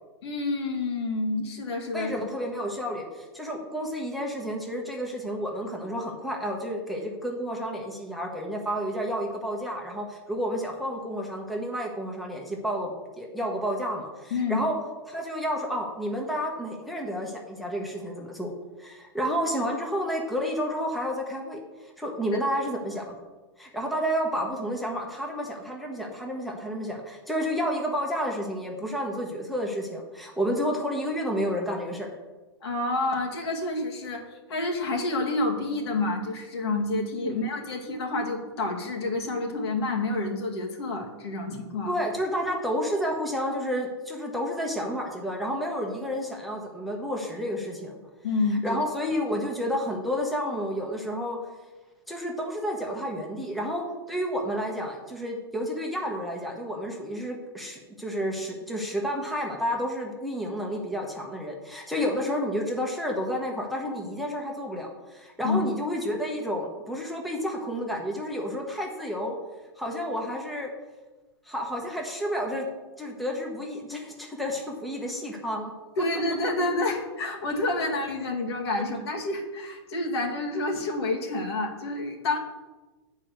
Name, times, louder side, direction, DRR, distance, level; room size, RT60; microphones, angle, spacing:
voice 1, 0.2-2.1 14.3-14.6 22.3-22.4 32.6-42.0 48.2-48.8 65.4-65.6 76.0-82.4, left 2 dB, 70° left, 1 dB, 2.0 m, -28 dB
voice 2, 1.9-12.9 13.2-14.7 15.1-18.5 18.8-23.2 23.6-32.1 37.2-37.5 41.9-47.9 48.6-51.4 52.1-69.3 69.8-70.7 71.4-72.7 73.0-75.7, equal, ahead, 0 dB, 1.0 m, -30 dB
8.5 x 4.7 x 6.4 m, 1.2 s
hypercardioid pair, 145°, 14 cm